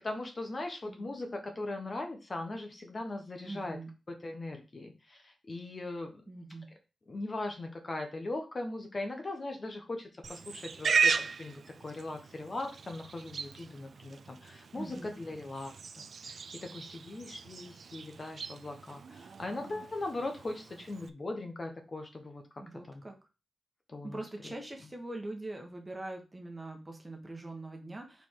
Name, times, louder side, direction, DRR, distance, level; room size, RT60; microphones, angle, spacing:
voice 1, 0.0-3.8 4.2-6.2 7.1-15.7 16.3-22.4 22.9-23.0 23.9-24.5, left 2 dB, 30° left, 4 dB, 1.1 m, -39 dB
voice 2, 3.4-3.9 6.3-6.7 14.7-15.1 22.6-23.1 24.0-28.3, right 2 dB, 15° right, 2 dB, 1.4 m, -43 dB
Livestock farm animals working animals, 10.2-21.1, right 5 dB, 60° right, 0.4 m, -36 dB
5.2 x 4.6 x 4.7 m, 0.30 s
wide cardioid pair, 160°, 0 cm